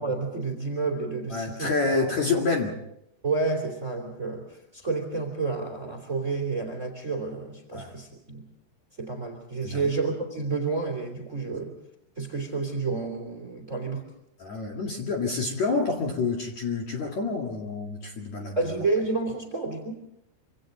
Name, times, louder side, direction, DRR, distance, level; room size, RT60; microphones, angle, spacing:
voice 1, 0.0-2.1 3.2-8.5 9.0-11.7 12.2-14.0 18.5-19.9, right 3 dB, 20° right, 4 dB, 2.8 m, -30 dB
voice 2, 1.3-2.8 7.7-8.0 9.6-9.9 14.4-18.6, left 4 dB, 50° left, 0 dB, 2.9 m, -28 dB
26.5 x 26.0 x 3.9 m, 0.76 s
omnidirectional pair, 5.0 m